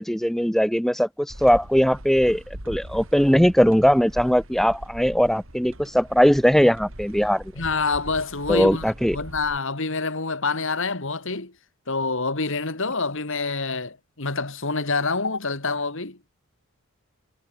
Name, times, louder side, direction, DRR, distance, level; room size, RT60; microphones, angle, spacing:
voice 1, 0.0-7.4 8.5-9.2, equal, ahead, 1.2 m, -20 dB
sound 1, 1.3-9.6, right 1 dB, 60° right, 4.4 m, -41 dB
voice 2, 7.6-11.5 11.9-16.2, left 3 dB, 60° left, 2.4 m, -27 dB
head